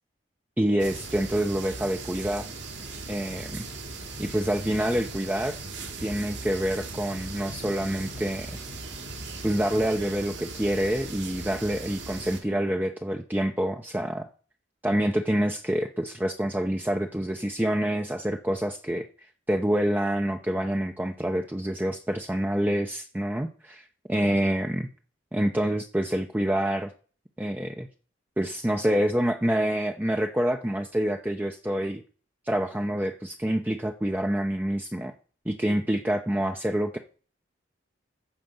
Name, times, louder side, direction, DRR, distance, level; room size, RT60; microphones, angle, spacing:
voice 1, 0.6-2.5 3.1-3.6 4.2-5.6 6.0-8.5 9.4-14.3 14.8-19.1 19.5-24.9 25.3-26.9 27.4-27.9 28.4-32.0 32.5-35.1 35.5-37.0, right 1 dB, 10° right, 3 dB, 0.7 m, -27 dB
sound 1, 0.8-12.4, right 3 dB, 75° right, 3.2 m, -38 dB
14.5 x 5.1 x 7.9 m, 0.40 s
head